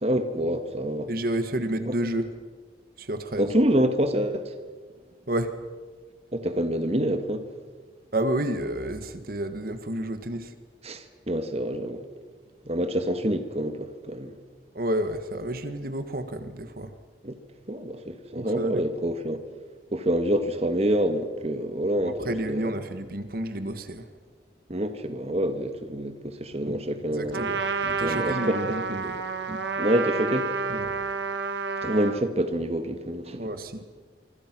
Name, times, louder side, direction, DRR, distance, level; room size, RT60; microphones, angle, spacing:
voice 1, 0.0-1.1 3.4-4.5 6.3-7.4 10.8-12.0 12.7-14.3 17.2-17.3 17.7-19.4 19.9-22.7 24.7-27.5 28.0-28.6 29.5-30.5 31.8-33.4, right 1 dB, 35° right, 1.7 m, -27 dB
voice 2, 1.1-2.3 3.0-3.5 5.3-5.5 8.1-10.5 14.7-16.9 18.3-18.9 22.0-24.1 27.1-29.2 30.7-30.9 33.4-33.8, right 1 dB, 55° right, 1.6 m, -30 dB
Trumpet, 27.3-32.2, right 4 dB, 80° right, 1.9 m, -29 dB
26.5 x 25.0 x 6.1 m
head